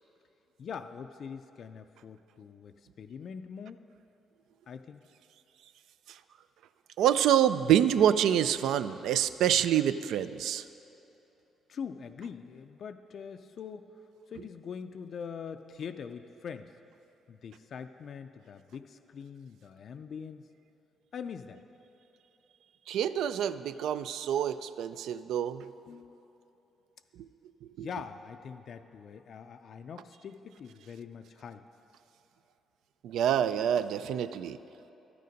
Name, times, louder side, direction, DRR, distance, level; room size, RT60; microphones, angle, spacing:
voice 1, 0.6-3.8 4.7-5.0 11.7-13.9 14.3-16.7 17.3-20.4 21.1-21.6 25.9-26.2 27.8-31.7, left 6 dB, 60° left, 8 dB, 0.3 m, -43 dB
voice 2, 7.0-10.6 22.9-25.7 27.8-27.9 33.0-34.6, right 10 dB, 80° right, 13 dB, 0.3 m, -26 dB
12.5 x 6.7 x 5.1 m, 3.0 s
cardioid pair, 90°, 0 cm